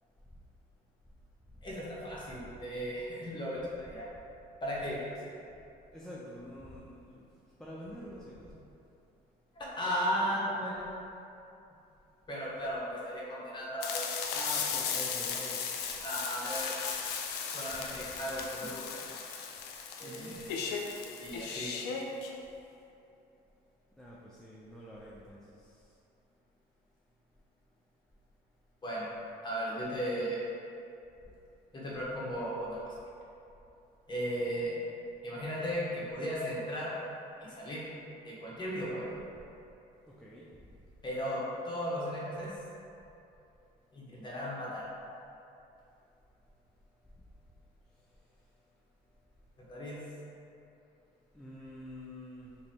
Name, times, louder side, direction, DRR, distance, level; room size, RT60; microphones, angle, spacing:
voice 1, 1.6-4.1 4.6-5.0 9.5-10.9 12.3-14.1 16.0-16.7 17.5-19.1 20.0-20.6 21.2-21.7 28.8-29.1 29.4-30.5 31.7-32.9 34.1-34.8 35.2-36.9 37.4-37.9 38.2-39.1 41.0-42.5 43.9-44.9 49.6-50.0, equal, 25° left, -6 dB, 1.0 m, -36 dB
voice 2, 5.2-5.6 5.9-7.3 7.6-8.6 14.3-15.6 20.0-20.5 24.0-25.9 40.1-40.6 51.3-52.6, equal, 5° left, -7 dB, 0.3 m, -46 dB
sound 1, 13.8-22.3, left 6 dB, 80° left, 0.4 m, -36 dB
3.1 x 2.6 x 4.0 m, 2.7 s
cardioid pair, 110°, 17 cm